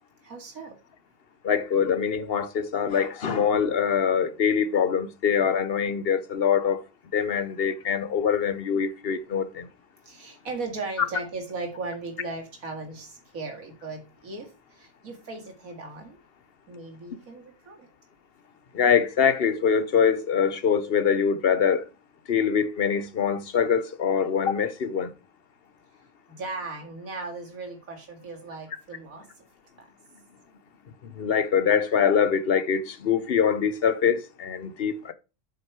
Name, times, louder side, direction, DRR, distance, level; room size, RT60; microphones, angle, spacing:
voice 1, 0.2-0.8 10.1-16.2 16.7-17.9 26.3-29.3, right 3 dB, 75° right, 2.5 m, -37 dB
voice 2, 1.4-6.8 7.1-9.7 18.7-21.9 22.3-25.1 31.0-35.1, left 7 dB, 50° left, 0.8 m, -24 dB
7.9 x 6.0 x 4.6 m
omnidirectional pair, 1.5 m